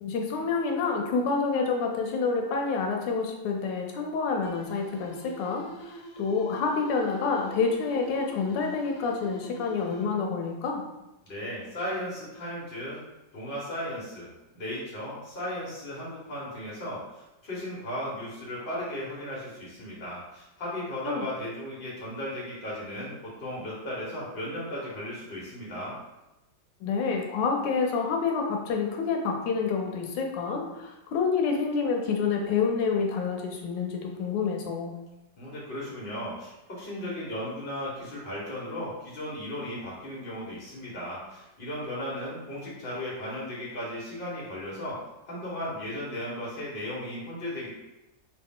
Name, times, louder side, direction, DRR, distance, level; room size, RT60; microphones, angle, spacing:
voice 1, 0.0-10.8 21.1-21.3 26.8-34.9, left 5 dB, 90° left, 2 dB, 1.3 m, -28 dB
sound 1, 4.4-10.4, right 2 dB, 60° left, 0.9 m, -45 dB
voice 2, 11.2-13.0 13.3-26.0 35.4-45.0 45.2-47.7, left 1 dB, 35° left, -7 dB, 1.3 m, -36 dB
3.1 x 2.7 x 3.6 m, 0.97 s
omnidirectional pair, 1.9 m